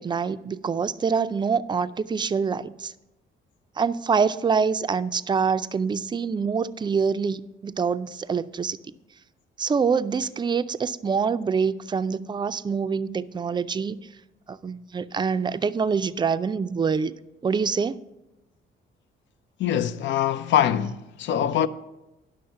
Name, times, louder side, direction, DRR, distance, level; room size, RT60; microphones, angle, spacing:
voice 1, 0.0-2.9 3.8-8.8 9.6-14.1 14.5-17.1 17.4-18.0, right 5 dB, 20° right, 0.4 m, -25 dB
voice 2, 19.6-21.7, left 10 dB, 70° left, 0.5 m, -23 dB
10.5 x 6.2 x 5.6 m
cardioid pair, 90°, 20 cm